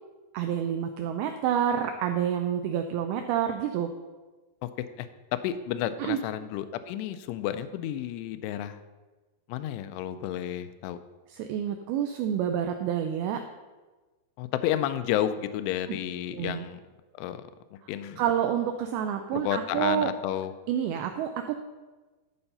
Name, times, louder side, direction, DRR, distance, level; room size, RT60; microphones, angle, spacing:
voice 1, 0.3-3.9 6.0-6.2 11.3-13.4 15.9-16.0 16.3-16.6 18.2-20.1 20.7-21.5, right 9 dB, 85° right, 6 dB, 2.2 m, -28 dB
voice 2, 5.0-8.8 9.5-11.0 14.4-16.8 17.2-17.4 17.9-18.2 19.3-20.5, left 11 dB, 85° left, 10 dB, 2.6 m, -31 dB
12.5 x 4.4 x 5.5 m, 1.2 s
omnidirectional pair, 5.0 m